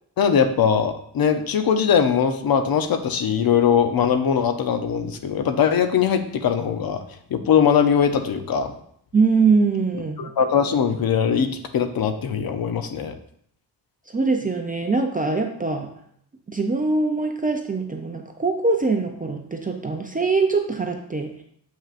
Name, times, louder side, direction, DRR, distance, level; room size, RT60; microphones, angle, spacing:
voice 1, 0.2-7.0 7.3-8.7 10.2-13.1, left 7 dB, 55° left, 8 dB, 0.6 m, -21 dB
voice 2, 9.1-10.3 14.1-15.9 16.5-21.3, right 4 dB, 20° right, 3 dB, 0.4 m, -22 dB
7.4 x 5.7 x 2.4 m, 0.67 s
wide cardioid pair, 160°, 44 cm